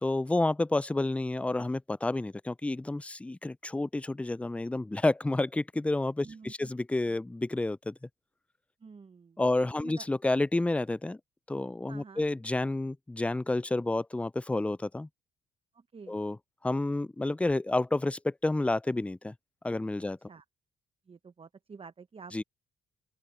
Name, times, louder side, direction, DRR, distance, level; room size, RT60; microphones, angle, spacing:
voice 1, 0.0-7.9 9.4-11.2 11.5-15.1 16.1-16.4 16.6-19.3 19.6-20.2 22.3-22.4, left 2 dB, 5° left, 0.3 m, -30 dB
voice 2, 6.2-6.7 8.8-9.4 9.8-10.1 11.9-12.2 15.7-16.2 20.3-20.4 21.1-22.4, right 5 dB, 30° right, 0.8 m, -49 dB
open air
cardioid pair, 90°, 20 cm